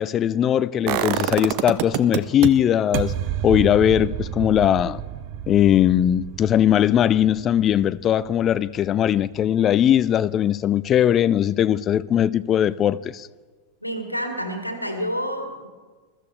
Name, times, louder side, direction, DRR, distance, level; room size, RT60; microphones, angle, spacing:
voice 1, 0.0-3.1 3.4-5.0 5.5-13.3, left 10 dB, 30° left, 0.4 m, -19 dB
sound 1, 0.9-2.5 2.9-8.8 9.1-9.2, right 12 dB, 45° right, 0.7 m, -28 dB
voice 2, 13.8-15.7, equal, 90° left, 1.9 m, -28 dB
22.0 x 13.5 x 3.3 m
figure-of-eight pair, 90°, 0 cm